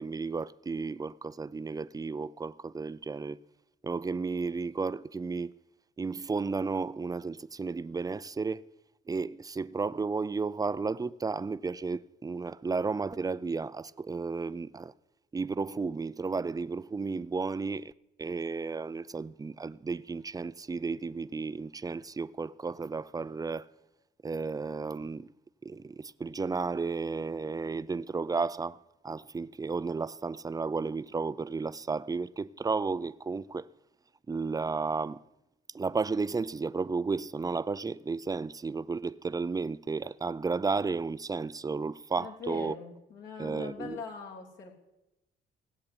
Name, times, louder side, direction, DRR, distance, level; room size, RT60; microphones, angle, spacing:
voice 1, 0.0-3.4 3.8-5.5 6.0-8.6 9.1-14.9 15.3-17.9 18.2-23.7 24.2-25.3 25.6-28.8 29.0-33.7 34.3-35.2 35.7-42.7 43.4-44.0, right 4 dB, 20° right, 0.5 m, -33 dB
voice 2, 42.2-44.7, left 5 dB, 70° left, 3.3 m, -42 dB
17.5 x 8.2 x 8.6 m
cardioid pair, 90°, 20 cm